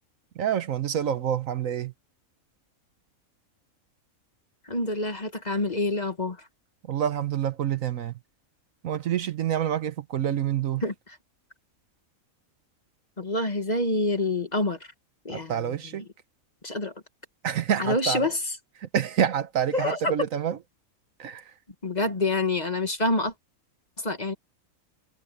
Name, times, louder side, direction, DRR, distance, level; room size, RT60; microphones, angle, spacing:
voice 1, 0.4-1.9 6.9-8.1 8.8-10.8 15.3-16.0 17.4-18.3 18.8-20.6 21.2-21.4, right 9 dB, 70° right, 1.3 m, -27 dB
voice 2, 4.7-6.4 10.8-11.2 13.2-14.8 15.3-16.0 16.6-16.9 17.8-18.6 19.7-20.1 21.8-23.3 24.0-24.3, left 2 dB, 30° left, 1.8 m, -27 dB
omnidirectional pair, 1.5 m